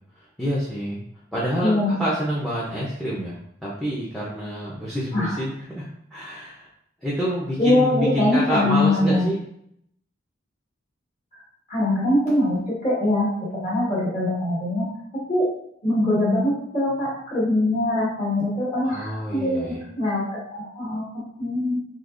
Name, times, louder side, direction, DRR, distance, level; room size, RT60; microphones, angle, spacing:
voice 1, 0.1-1.0 1.3-6.7 7.0-9.4 18.9-19.8, equal, ahead, -7 dB, 0.5 m, -28 dB
voice 2, 1.6-2.0 5.1-5.4 7.6-9.3 11.7-15.5 15.8-21.8, left 1 dB, 35° left, -7 dB, 1.3 m, -23 dB
3.8 x 2.8 x 2.5 m, 0.72 s
head